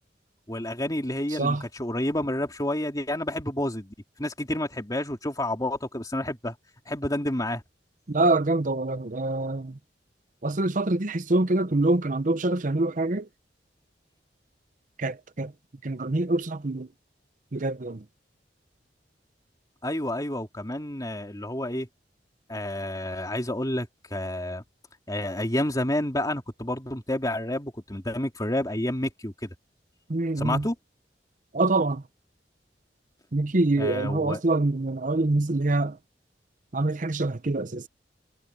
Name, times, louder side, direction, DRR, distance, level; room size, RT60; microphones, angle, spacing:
voice 1, 0.5-6.5 6.9-7.6 19.8-21.9 22.5-24.6 25.1-29.5 30.4-30.8 33.8-34.4, left 1 dB, 20° left, 2.8 m, -29 dB
voice 2, 8.1-9.7 10.4-13.2 15.0-15.5 15.8-16.9 17.5-18.0 30.1-30.6 31.5-32.0 33.3-35.9 36.7-37.8, right 2 dB, 45° right, 0.8 m, -25 dB
head